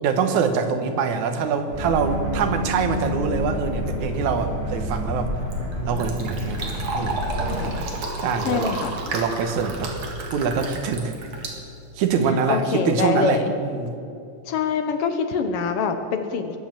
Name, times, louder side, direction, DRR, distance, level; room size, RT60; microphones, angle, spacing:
voice 1, 0.0-5.3 5.8-7.2 8.2-8.8 9.1-10.0 10.3-11.1 12.0-14.0, right 6 dB, 80° right, 7 dB, 2.5 m, -24 dB
sound 1, 1.7-7.7, equal, 5° right, 4.3 m, -28 dB
Fill (with liquid), 5.2-12.3, right 2 dB, 50° right, 2.6 m, -32 dB
voice 2, 8.4-8.9 12.5-13.5 14.5-16.6, left 6 dB, 65° left, 7 dB, 1.5 m, -24 dB
21.5 x 7.7 x 7.3 m, 2.6 s
omnidirectional pair, 3.4 m